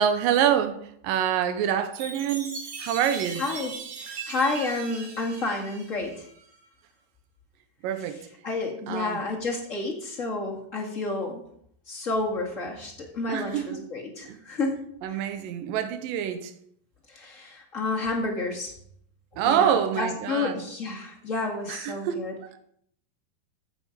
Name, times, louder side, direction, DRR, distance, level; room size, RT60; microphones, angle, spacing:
voice 1, 0.0-3.4 7.8-8.2 8.9-9.2 13.3-13.8 14.2-14.4 15.0-16.5 19.4-20.6 21.7-22.5, right 9 dB, 80° right, 2.6 m, -26 dB
Chime, 1.9-6.5, right 4 dB, 55° right, 2.9 m, -39 dB
voice 2, 3.4-3.7 4.0-6.2 8.4-11.4 11.9-15.2 17.1-18.7 19.4-22.3, left 3 dB, 30° left, 1.5 m, -30 dB
14.0 x 7.3 x 5.2 m
omnidirectional pair, 4.2 m